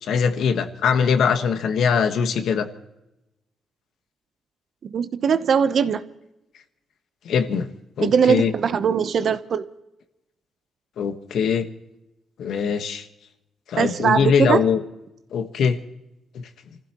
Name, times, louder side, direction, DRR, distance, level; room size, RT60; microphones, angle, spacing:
voice 1, 0.0-2.7 7.2-7.7 8.0-8.5 11.0-11.7 12.4-13.0 13.7-14.8 15.3-15.8 16.3-16.5, left 6 dB, 75° left, 1.4 m, -22 dB
voice 2, 4.8-6.0 8.0-9.7 13.8-14.6, right 7 dB, 55° right, 0.9 m, -20 dB
28.5 x 15.0 x 3.0 m
cardioid pair, 130°, 0 cm